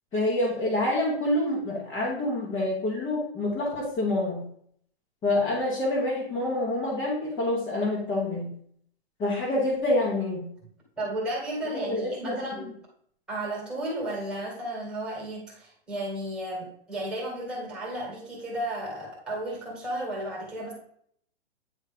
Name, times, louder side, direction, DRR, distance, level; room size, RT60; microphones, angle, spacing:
voice 1, 0.1-4.4 5.2-8.5 9.2-10.4 11.7-12.7, left 1 dB, 15° left, -7 dB, 1.1 m, -27 dB
voice 2, 11.0-12.7 13.3-20.7, right 1 dB, 5° right, -4 dB, 1.8 m, -33 dB
9.2 x 3.2 x 5.0 m, 0.65 s
hypercardioid pair, 170°, 33 cm